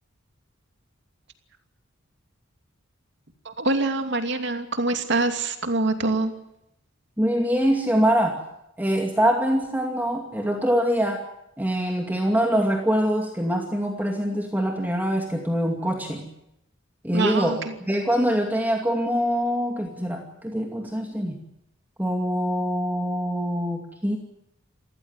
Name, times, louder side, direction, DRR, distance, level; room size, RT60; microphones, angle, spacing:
voice 1, 3.4-6.3 17.1-17.7, right 2 dB, 60° right, 6 dB, 2.7 m, -25 dB
voice 2, 7.2-8.4 8.8-11.2 11.6-16.3 17.0-17.6 17.9-21.4 22.0-24.2, equal, 10° right, 1 dB, 2.4 m, -24 dB
28.0 x 15.0 x 9.7 m, 0.84 s
head